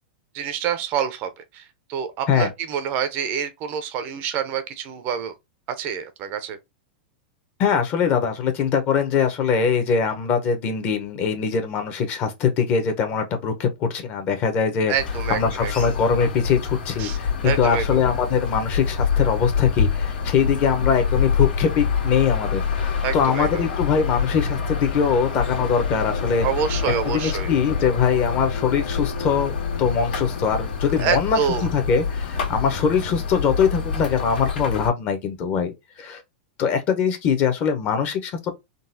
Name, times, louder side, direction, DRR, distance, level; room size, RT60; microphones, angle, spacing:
voice 1, 0.3-1.6 1.9-5.3 5.8-6.6 14.9-15.7 17.0-17.2 17.4-17.8 23.0-23.6 26.4-27.5 31.0-31.7, right 8 dB, 40° right, 0.5 m, -27 dB
voice 2, 7.6-14.9 15.3-26.5 27.0-36.2 36.6-38.5, left 6 dB, 35° left, 0.8 m, -22 dB
sound 1, 15.0-34.9, left 6 dB, 80° left, 1.6 m, -26 dB
3.8 x 2.3 x 2.6 m
supercardioid pair, 145°, 5 cm